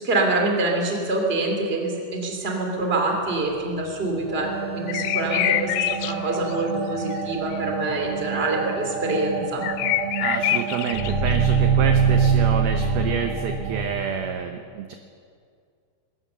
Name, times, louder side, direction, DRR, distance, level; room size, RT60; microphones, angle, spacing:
voice 1, 0.0-9.6, right 2 dB, 15° right, 1 dB, 2.1 m, -25 dB
sound 1, 4.3-13.9, right 6 dB, 55° right, 3.4 m, -25 dB
sound 2, 4.9-6.2 6.5-6.6 7.1-7.6 9.6-11.6, left 14 dB, 85° left, 2.4 m, -25 dB
voice 2, 10.2-14.9, right 7 dB, 75° right, 5 dB, 2.3 m, -29 dB
21.5 x 17.5 x 6.9 m, 2.3 s
omnidirectional pair, 5.5 m